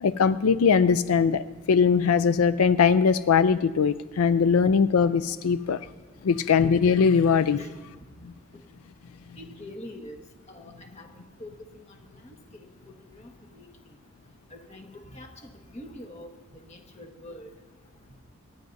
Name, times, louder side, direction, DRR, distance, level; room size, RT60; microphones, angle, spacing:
voice 1, 0.0-5.9 6.2-7.6 8.2-8.3, left 6 dB, 80° left, 13 dB, 0.4 m, -21 dB
voice 2, 9.4-13.7 14.5-17.5, left 1 dB, 30° left, 3 dB, 1.5 m, -45 dB
27.0 x 10.5 x 2.7 m, 1.4 s
head